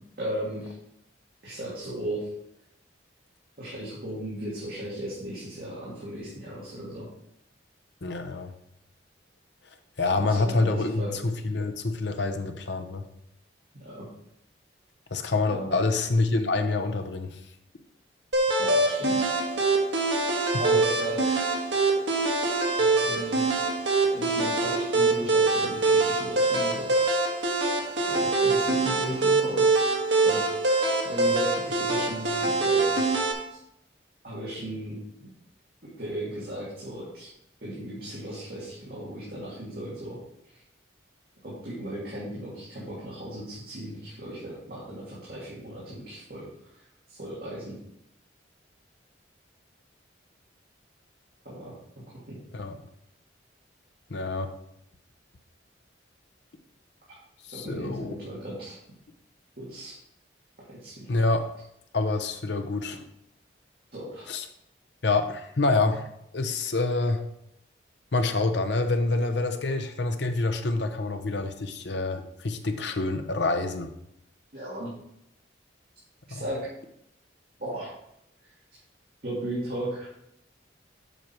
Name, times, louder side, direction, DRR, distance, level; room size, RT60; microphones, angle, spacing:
voice 1, 0.2-0.7 1.4-2.3 3.6-7.1 10.1-11.2 13.8-14.1 15.5-15.7 18.6-19.3 20.6-21.5 23.0-23.4 24.1-27.1 27.4-27.5 28.1-29.8 30.1-30.4 31.0-33.0 33.5-33.6 34.2-35.3 36.0-37.3 37.6-40.2 41.4-46.5 47.1-47.8 51.4-51.7 52.3-52.4 57.5-58.8 59.6-60.0 60.7-61.1 63.9-64.3 74.5-74.9 76.3-76.7 77.6-77.9 79.2-80.1, right 1 dB, 50° right, -8 dB, 2.3 m, -36 dB
voice 2, 8.0-8.5 10.0-13.1 15.1-17.4 22.8-22.9 52.5-52.8 54.1-54.5 57.4-58.2 61.1-61.4 61.9-63.0 64.3-64.5 65.0-66.1 66.3-67.2 68.1-73.9 76.3-76.4, left 3 dB, 70° left, 7 dB, 0.8 m, -27 dB
sound 1, 18.3-33.3, right 3 dB, 75° right, 1.6 m, -24 dB
8.1 x 6.1 x 4.4 m, 0.78 s
head